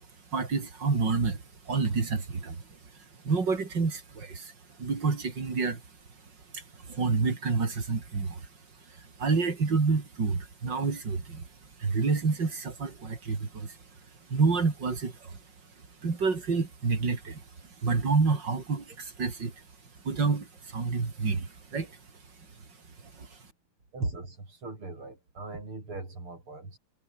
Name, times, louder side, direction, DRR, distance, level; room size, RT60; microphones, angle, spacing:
voice 1, 0.3-2.8 3.2-4.5 4.8-5.8 6.5-8.5 8.9-11.5 11.8-13.8 14.3-15.4 16.0-17.4 17.8-19.6 20.0-22.0 23.1-23.4, right 4 dB, 55° right, 4.0 m, -28 dB
voice 2, 23.9-26.8, right 3 dB, 75° right, 8.1 m, -38 dB
omnidirectional pair, 2.4 m